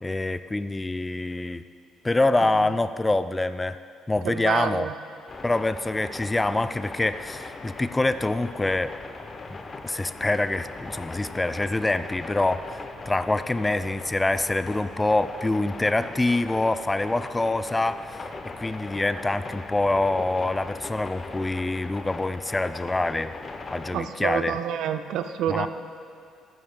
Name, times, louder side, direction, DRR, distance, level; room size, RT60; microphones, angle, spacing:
voice 1, 0.0-1.6 2.0-3.8 4.1-4.9 5.4-8.9 9.8-18.0 18.6-23.3 23.7-24.6 25.5-25.7, left 2 dB, 15° left, 13 dB, 0.3 m, -25 dB
voice 2, 4.2-4.9 23.9-25.7, right 9 dB, 60° right, 9 dB, 0.5 m, -28 dB
sound 1, 5.3-24.0, left 3 dB, 30° left, 0.7 m, -39 dB
14.0 x 13.0 x 2.3 m, 2.3 s
figure-of-eight pair, 45°, 0 cm